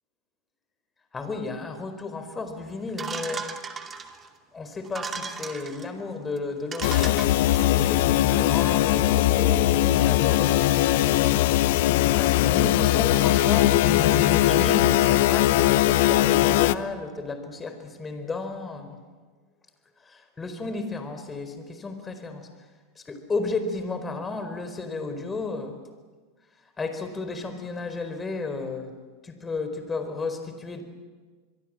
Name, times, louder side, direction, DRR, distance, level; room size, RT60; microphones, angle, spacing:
voice 1, 1.1-3.5 4.5-7.3 7.6-11.1 12.2-19.0 20.0-22.5 23.0-25.8 26.8-28.9 29.2-30.8, left 3 dB, 20° left, 8 dB, 4.6 m, -33 dB
sound 1, 3.0-4.3 4.8-5.9 6.4-6.5 6.7-7.9, right 5 dB, 25° right, 2.4 m, -36 dB
sound 2, 6.8-16.8, left 15 dB, 65° left, 0.8 m, -20 dB
26.5 x 22.5 x 7.7 m, 1.4 s
hypercardioid pair, 100°, 0 cm